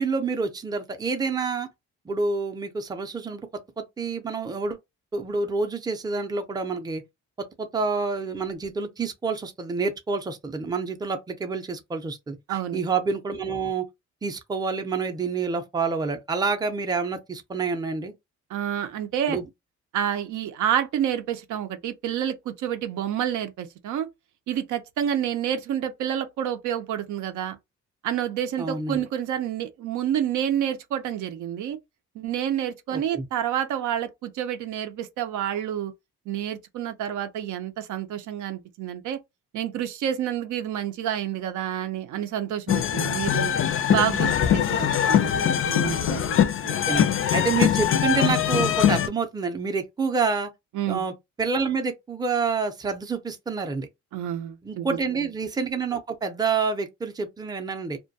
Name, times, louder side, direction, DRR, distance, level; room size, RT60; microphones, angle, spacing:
voice 1, 0.0-1.7 2.1-3.5 3.8-4.8 5.1-7.0 7.4-13.9 14.2-18.1 19.3-19.5 28.6-29.0 32.9-33.3 46.8-50.5 50.9-53.9 54.6-58.0, right 4 dB, 15° right, 0.5 m, -28 dB
voice 2, 12.5-12.8 18.5-19.4 19.9-24.1 24.5-27.6 28.0-31.8 32.2-35.9 36.3-39.2 39.5-43.6 43.9-46.4 46.6-46.8 50.7-51.0 54.1-55.0, right 10 dB, 75° right, 0.5 m, -29 dB
sound 1, 42.7-49.1, left 9 dB, 45° left, 0.4 m, -22 dB
2.2 x 2.1 x 2.6 m
cardioid pair, 90°, 30 cm